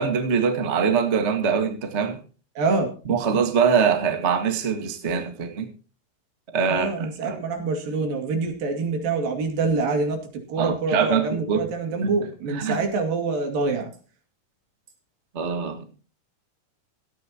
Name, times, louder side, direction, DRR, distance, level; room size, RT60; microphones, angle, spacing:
voice 1, 0.0-2.2 3.0-5.7 6.5-7.4 10.6-11.7 12.0-12.1 12.5-12.8 15.3-15.8, right 6 dB, 30° right, 1.4 m, -23 dB
voice 2, 2.6-2.9 6.7-10.2 10.5-13.9, right 3 dB, 85° right, 4.2 m, -25 dB
17.0 x 13.5 x 2.9 m
omnidirectional pair, 3.9 m